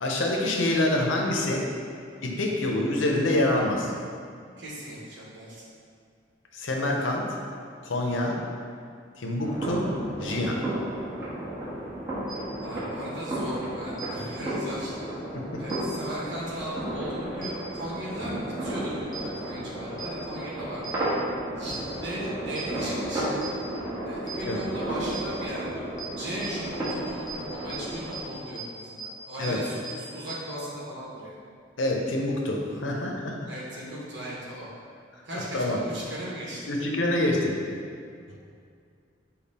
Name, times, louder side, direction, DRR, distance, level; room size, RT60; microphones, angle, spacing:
voice 1, 0.0-1.7 2.2-3.9 6.5-7.3 7.8-8.4 9.2-9.9 10.2-10.6 15.3-15.6 24.5-24.6 29.4-29.6 31.8-33.5 35.5-35.8 36.7-37.6, left 1 dB, 75° left, 0 dB, 0.6 m, -26 dB
voice 2, 4.6-5.6 12.6-14.9 15.6-20.9 21.5-23.4 24.0-25.8 26.2-31.4 33.5-34.7 35.2-36.7, right 1 dB, 65° right, -6 dB, 1.0 m, -37 dB
sound 1, 9.4-28.2, right 1 dB, 15° right, 1.3 m, -33 dB
sound 2, 12.3-12.4 14.0-14.1 15.7-15.8 17.4-17.5 19.1-19.2 20.0-20.1 20.8-20.9 21.7-21.8 22.6-22.7 23.4-23.5 24.3-24.4 25.1-25.2 26.0-26.1 26.4-26.5 26.8-26.9 27.3-27.4 27.7-27.8 28.1-28.2 28.6-28.7 29.0-29.1 29.4-29.5 29.8-29.9 30.3-30.4, right 7 dB, 45° left, 0.8 m, -38 dB
5.2 x 2.3 x 4.1 m, 2.3 s
head